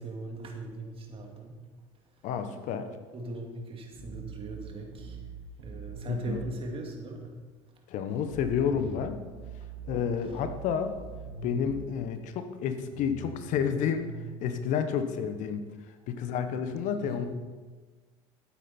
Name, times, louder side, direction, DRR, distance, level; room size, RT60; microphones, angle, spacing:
voice 1, 0.0-1.6 3.1-5.2 5.6-7.3 17.0-17.3, right 1 dB, 40° right, 2 dB, 2.4 m, -39 dB
voice 2, 2.2-2.9 6.1-6.4 7.9-9.2 9.8-10.9 11.4-14.1 14.4-15.6 16.1-17.3, left 7 dB, 60° left, 9 dB, 1.1 m, -30 dB
sound 1, 3.9-6.5 8.3-11.9 12.9-14.6, right 5 dB, 85° right, 2.4 m, -43 dB
12.0 x 9.3 x 4.4 m, 1.3 s
hypercardioid pair, 70°, 15 cm